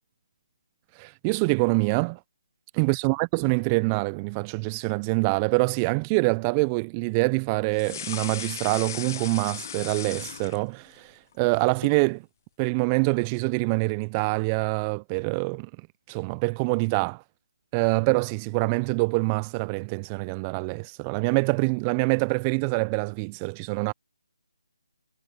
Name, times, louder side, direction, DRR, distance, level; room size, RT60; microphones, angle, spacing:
voice 1, 1.0-2.2 2.7-11.1 11.4-12.2 12.6-15.7 16.1-17.2 17.7-23.9, right 31 dB, 20° right, 0.3 m, -25 dB
sound 1, 7.7-11.0 11.3-12.0, left 9 dB, 40° left, 0.5 m, -37 dB
figure-of-eight pair, 155°, 3 cm